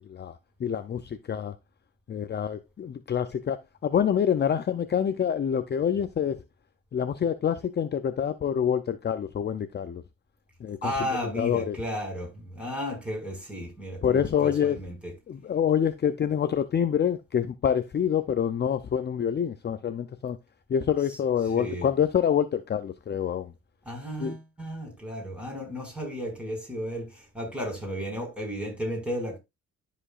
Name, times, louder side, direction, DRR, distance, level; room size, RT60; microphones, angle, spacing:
voice 1, 0.0-1.5 2.1-6.4 6.9-10.0 10.6-11.1 11.4-11.8 14.0-14.8 15.3-20.4 20.7-23.5 24.2-24.4, left 8 dB, 35° left, 0.6 m, -26 dB
voice 2, 10.8-14.9 21.5-21.9 23.9-29.4, equal, 5° right, 5.6 m, -34 dB
12.5 x 5.1 x 2.4 m
cardioid pair, 90°, 30 cm